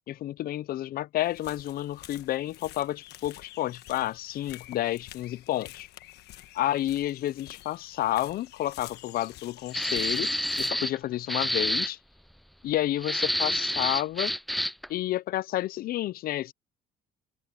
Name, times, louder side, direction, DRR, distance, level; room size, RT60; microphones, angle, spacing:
voice 1, 0.1-5.9 6.5-10.3 10.6-12.0 12.6-14.3 14.9-16.5, left 14 dB, 60° left, 0.6 m, -30 dB
sound 1, 1.2-10.7, left 15 dB, 80° left, 1.3 m, -48 dB
sound 2, 9.7-11.0 11.3-11.9 13.0-14.9, equal, ahead, 0.6 m, -28 dB
open air
cardioid pair, 110°, 17 cm